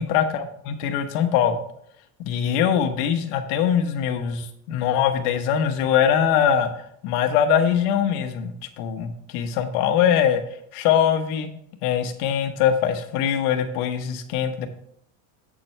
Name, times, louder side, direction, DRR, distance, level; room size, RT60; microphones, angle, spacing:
voice 1, 0.0-1.6 2.2-6.7 7.0-10.4 10.7-11.5 11.8-14.7, left 8 dB, 85° left, 7 dB, 1.2 m, -22 dB
8.4 x 7.4 x 3.3 m, 0.70 s
cardioid pair, 165°, 43 cm